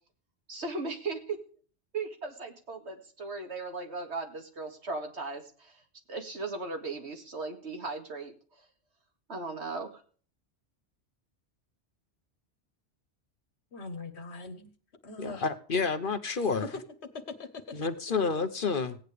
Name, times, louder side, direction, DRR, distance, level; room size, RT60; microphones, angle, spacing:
voice 1, 0.5-1.4 1.9-5.8 6.1-8.6 9.3-9.9, right 3 dB, 70° right, 5 dB, 2.4 m, -37 dB
voice 2, 13.7-14.7 15.0-15.5 16.6-16.7 17.0-17.8, left 3 dB, 70° left, 8 dB, 1.9 m, -41 dB
voice 3, 15.2-16.7 17.7-19.0, left 4 dB, 50° left, 10 dB, 1.2 m, -29 dB
17.0 x 9.0 x 5.0 m, 0.43 s
omnidirectional pair, 1.2 m